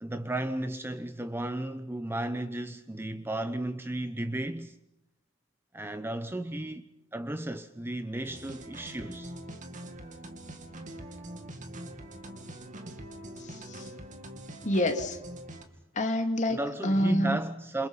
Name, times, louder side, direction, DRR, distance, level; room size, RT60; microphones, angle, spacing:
voice 1, 0.0-4.8 5.7-9.3 16.5-17.9, right 1 dB, 10° right, 0.8 m, -34 dB
sound 1, 8.2-15.6, right 1 dB, 40° right, 2.6 m, -43 dB
voice 2, 13.4-13.9 14.6-15.2 16.0-17.4, left 1 dB, 35° left, 2.7 m, -28 dB
28.5 x 28.0 x 5.6 m
head